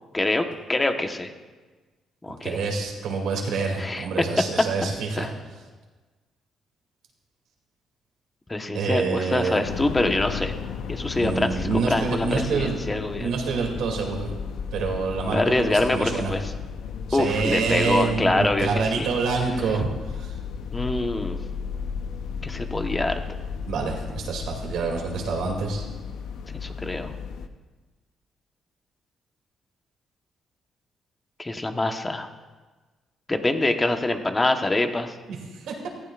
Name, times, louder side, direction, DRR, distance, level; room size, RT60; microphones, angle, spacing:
voice 1, 0.1-1.3 2.2-2.6 3.8-4.1 5.2-5.3 8.5-10.5 10.9-13.3 15.3-16.5 17.1-19.1 20.7-21.4 22.4-23.2 26.5-27.1 31.4-32.3 33.3-35.1, left 2 dB, 20° left, 5 dB, 1.2 m, -25 dB
voice 2, 2.4-5.3 8.7-9.6 11.1-12.7 13.2-14.3 14.7-16.3 17.1-19.9 20.2-20.3 23.7-25.8 35.3-35.4 35.7-35.8, right 4 dB, 80° right, 1 dB, 2.7 m, -27 dB
sound 1, 9.6-27.5, left 6 dB, 80° left, 0.7 m, -34 dB
17.5 x 15.0 x 2.5 m, 1.3 s
cardioid pair, 90°, 0 cm